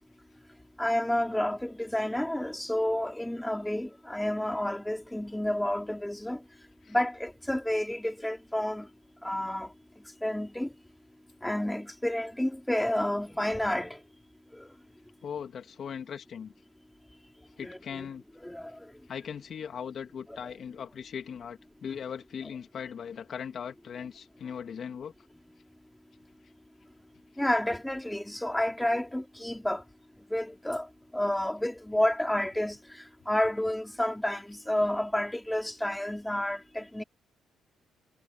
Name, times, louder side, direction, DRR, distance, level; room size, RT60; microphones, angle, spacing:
voice 1, 0.8-6.4 6.9-8.9 9.2-9.7 10.2-10.7 11.4-14.0 14.5-14.7 17.6-18.1 18.4-18.7 27.4-29.8 30.3-30.9 31.1-32.8 33.3-37.0, left 1 dB, 5° left, 4.3 m, -30 dB
voice 2, 15.2-16.5 17.6-18.2 19.1-25.1, left 7 dB, 55° left, 2.9 m, -39 dB
cardioid pair, 90°, 0 cm